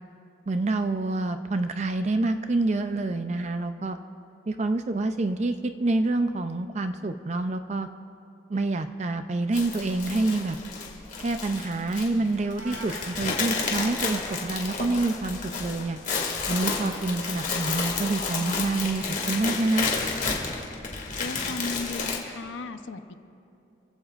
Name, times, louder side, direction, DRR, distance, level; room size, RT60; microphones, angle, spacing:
voice 1, 0.5-4.0 4.5-7.9 8.5-10.6 11.2-16.0 16.5-19.9, right 2 dB, 35° right, 8 dB, 0.4 m, -27 dB
sound 1, 9.5-22.2, left 4 dB, 40° left, 2.1 m, -31 dB
Meow, 12.4-13.2, right 3 dB, 60° right, 1.0 m, -42 dB
voice 2, 21.2-23.1, left 3 dB, 75° left, 9 dB, 0.8 m, -35 dB
29.5 x 16.0 x 2.5 m, 2.7 s
head